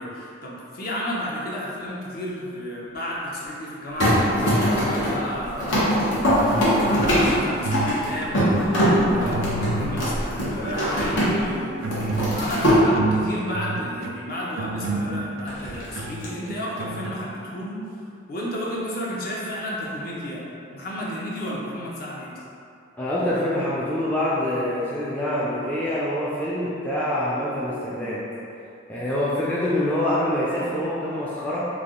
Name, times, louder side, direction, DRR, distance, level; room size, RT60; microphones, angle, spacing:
voice 1, 0.0-17.8 18.3-20.4 20.7-22.4, equal, 50° left, -4 dB, 0.6 m, -32 dB
sound 1, 4.0-11.5 11.8-12.8 15.5-16.3, equal, 80° left, 1.0 m, -22 dB
sound 2, 6.4-10.0 10.5-11.0 11.5-17.1, right 3 dB, 90° right, 0.3 m, -31 dB
voice 2, 23.0-28.2 28.9-31.7, left 1 dB, 10° left, -8 dB, 0.3 m, -25 dB
3.3 x 2.4 x 3.7 m, 2.5 s
head